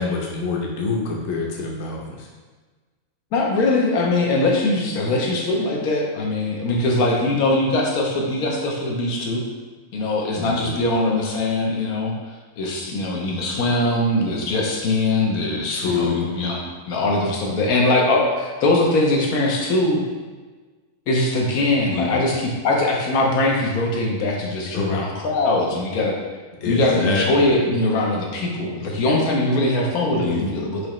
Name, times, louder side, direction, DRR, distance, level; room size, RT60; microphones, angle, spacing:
voice 1, 0.0-2.3 10.3-10.8 15.7-16.3 21.9-22.2 24.7-25.0 26.6-27.5 30.2-30.6, left 4 dB, 60° left, -1 dB, 0.9 m, -26 dB
voice 2, 3.3-9.4 9.9-16.6 16.9-20.0 21.1-26.2 26.6-30.9, left 2 dB, 85° left, -1 dB, 1.2 m, -21 dB
4.7 x 2.8 x 3.0 m, 1.3 s
omnidirectional pair, 1.5 m